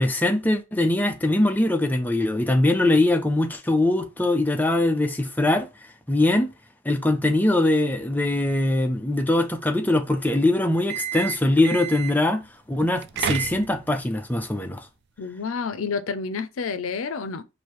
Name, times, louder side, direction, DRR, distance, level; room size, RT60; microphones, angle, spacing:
voice 1, 0.0-5.7 6.1-6.5 6.9-12.4 12.7-14.8, left 1 dB, 10° left, 0.5 m, -22 dB
sound 1, 10.8-12.3 12.9-14.0, right 9 dB, 55° right, 0.3 m, -30 dB
voice 2, 15.2-17.4, left 5 dB, 75° left, 0.5 m, -29 dB
4.7 x 2.7 x 3.1 m
head